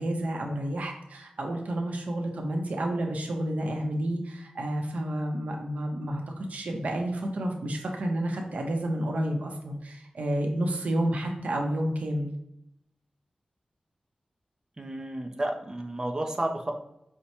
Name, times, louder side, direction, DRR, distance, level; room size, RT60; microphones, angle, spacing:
voice 1, 0.0-12.3, right 1 dB, 85° right, 2 dB, 0.6 m, -30 dB
voice 2, 14.8-16.7, right 1 dB, 25° right, 3 dB, 0.4 m, -31 dB
5.4 x 2.1 x 2.9 m, 0.81 s
wide cardioid pair, 105°, 2 cm